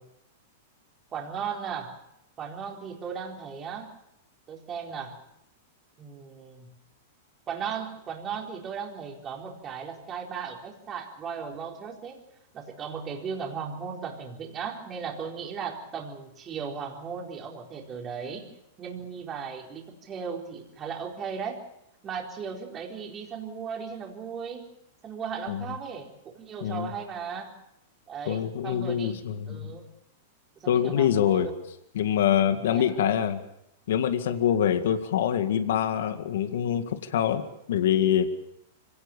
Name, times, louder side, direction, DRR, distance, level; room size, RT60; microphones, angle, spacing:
voice 1, 1.1-1.9 2.4-3.9 4.5-5.2 6.0-6.7 7.5-12.2 12.5-18.5 18.8-21.6 22.0-24.7 25.0-27.5 28.1-29.2 29.5-29.9 30.6-31.5 32.7-32.8, right 6 dB, 25° right, 0 dB, 4.4 m, -36 dB
voice 2, 28.3-29.8 30.7-31.5 32.0-33.4 33.9-37.4 37.7-38.3, left 9 dB, 75° left, 9 dB, 1.9 m, -25 dB
25.0 x 18.0 x 7.2 m, 0.81 s
hypercardioid pair, 130°, 0 cm